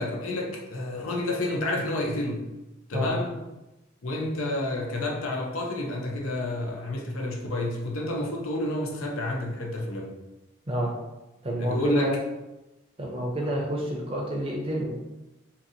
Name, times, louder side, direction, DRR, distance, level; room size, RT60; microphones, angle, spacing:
voice 1, 0.0-2.4 2.9-3.4 4.0-10.1 11.6-12.1, left 1 dB, 85° left, 1 dB, 0.6 m, -29 dB
voice 2, 11.4-12.1 13.0-14.9, right 1 dB, 25° right, -1 dB, 0.5 m, -29 dB
2.8 x 2.7 x 2.6 m, 1.0 s
head